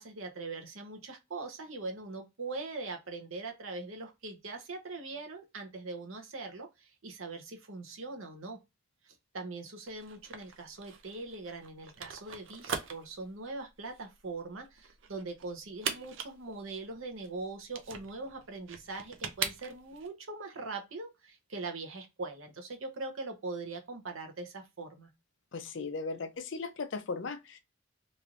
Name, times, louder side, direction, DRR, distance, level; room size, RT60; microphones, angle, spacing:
voice 1, 0.0-8.6 9.1-25.1, right 3 dB, 85° right, 0.9 m, -41 dB
sound 1, 9.9-20.1, right 6 dB, 70° right, 0.5 m, -41 dB
voice 2, 25.5-27.6, left 4 dB, 65° left, 0.5 m, -37 dB
3.1 x 2.6 x 2.4 m
head